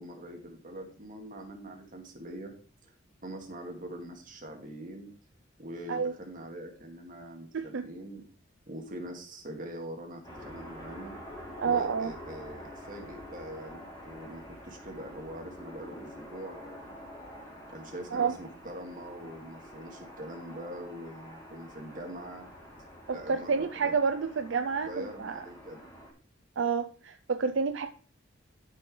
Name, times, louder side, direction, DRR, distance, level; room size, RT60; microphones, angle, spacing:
voice 1, 0.0-2.5 2.8-2.9 3.2-5.1 5.6-8.2 8.7-11.1 11.6-17.0 17.7-22.5 23.1-24.0 24.8-25.9, right 1 dB, 45° right, 2 dB, 2.1 m, -43 dB
voice 2, 7.5-7.9 11.6-12.1 18.1-18.3 23.1-25.4 26.6-27.9, right 5 dB, 75° right, 8 dB, 0.5 m, -29 dB
sound 1, 10.2-26.1, equal, 20° left, 3.9 m, -47 dB
13.0 x 6.3 x 3.3 m, 0.40 s
head